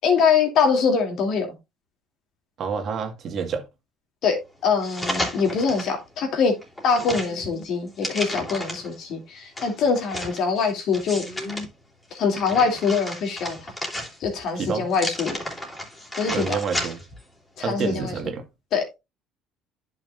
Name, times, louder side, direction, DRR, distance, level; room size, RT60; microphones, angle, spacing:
voice 1, 0.0-1.5 4.2-4.4 4.6-6.5 6.8-11.2 12.1-13.6 14.2-15.4 16.2-16.6 17.6-18.1 18.7-18.8, left 5 dB, 60° left, 2.9 m, -23 dB
voice 2, 2.6-3.6 14.5-14.9 16.3-17.0 17.6-18.4, right 6 dB, 50° right, 1.8 m, -28 dB
sound 1, 4.8-5.9 6.4-9.0 9.6-11.7 12.1-14.4 14.9-17.2 17.6-17.7, left 1 dB, 15° left, 3.4 m, -33 dB
10.5 x 6.0 x 2.6 m
supercardioid pair, 95°, 0 cm